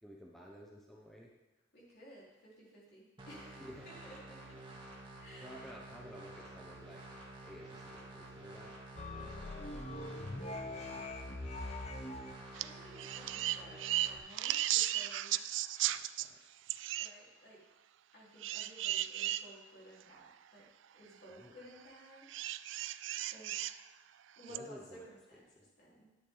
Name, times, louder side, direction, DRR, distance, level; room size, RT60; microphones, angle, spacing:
voice 1, 0.0-1.3 3.6-3.9 5.4-7.1 7.4-8.7 10.3-11.3 15.9-16.4 21.3-21.5 24.5-25.1 25.6-25.7, equal, ahead, -3 dB, 1.0 m, -53 dB
voice 2, 1.7-4.5 5.2-5.6 9.2-9.8 12.3-15.6 17.0-17.6 18.1-20.6 20.9-22.3 22.6-22.7 23.3-23.5 24.4-25.4 25.8-26.2, equal, 55° left, -6 dB, 4.5 m, -55 dB
sound 1, 3.2-14.2, right 2 dB, 25° right, 2.0 m, -51 dB
sound 2, 9.0-12.3, left 2 dB, 35° left, 0.8 m, -42 dB
sound 3, 12.5-12.7 13.0-16.3 16.7-17.1 18.4-19.4 20.2-20.3 22.3-23.8 24.5-24.6, right 14 dB, 65° right, 0.3 m, -35 dB
11.5 x 10.0 x 4.0 m, 1.0 s
head